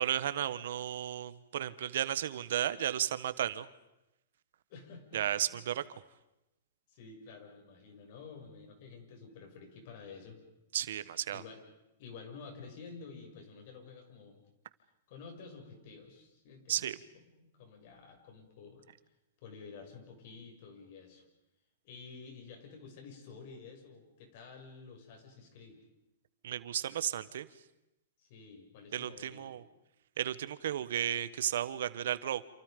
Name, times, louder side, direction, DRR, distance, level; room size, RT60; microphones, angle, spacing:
voice 1, 0.0-3.7 5.1-5.8 10.7-11.4 16.7-17.0 26.4-27.5 28.9-29.6 30.2-32.4, right 10 dB, 70° right, 14 dB, 1.3 m, -34 dB
voice 2, 4.7-5.2 5.5-5.6 6.9-10.4 11.3-11.6 12.0-14.4 15.1-16.9 17.3-18.8 19.4-21.2 21.8-25.8 28.2-29.5, left 5 dB, 50° left, 4 dB, 6.8 m, -50 dB
29.0 x 28.0 x 5.3 m, 0.91 s
hypercardioid pair, 150°, 0 cm